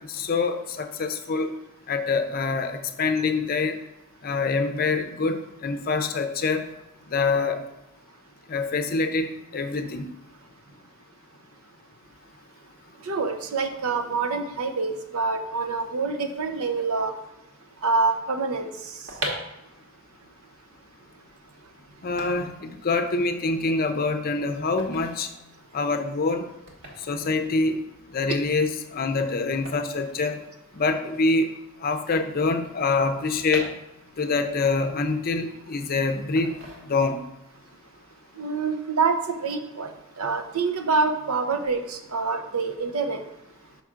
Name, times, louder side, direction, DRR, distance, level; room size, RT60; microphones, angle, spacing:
voice 1, 0.1-1.5 1.9-3.7 4.2-6.7 7.1-7.6 8.5-10.1 22.0-25.3 25.7-26.5 27.1-27.8 28.1-30.4 30.7-31.5 31.8-33.7 34.2-36.5 36.9-37.2, left 3 dB, 45° left, 8 dB, 0.6 m, -25 dB
voice 2, 13.0-17.1 17.8-18.7 38.4-43.2, right 4 dB, 75° right, 5 dB, 0.7 m, -26 dB
sound 1, 19.1-31.0 31.2-31.3 31.5-34.4 34.8-35.8 36.4-37.4 37.7-38.0, right 1 dB, 60° right, 1.5 m, -40 dB
5.8 x 5.8 x 3.7 m, 0.92 s
head